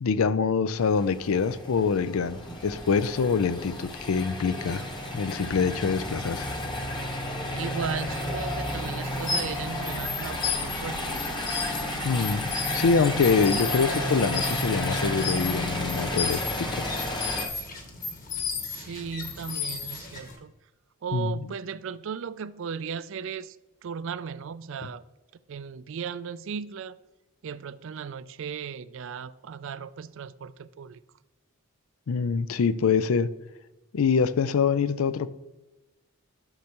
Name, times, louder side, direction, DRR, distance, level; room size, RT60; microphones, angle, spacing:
voice 1, 0.0-4.9 5.1-6.5 12.0-16.9 21.1-21.3 32.1-33.3 33.9-35.3, left 5 dB, 75° left, 0.4 m, -25 dB
sound 1, 0.8-17.5, left 1 dB, 20° left, 1.0 m, -32 dB
voice 2, 7.5-11.0 17.7-17.9 18.6-20.5 21.0-23.6 23.8-25.0 25.5-27.0 27.4-31.0, right 6 dB, 60° right, 0.4 m, -36 dB
sound 2, 9.1-20.4, left 5 dB, 40° left, 1.5 m, -34 dB
11.5 x 6.5 x 3.0 m
head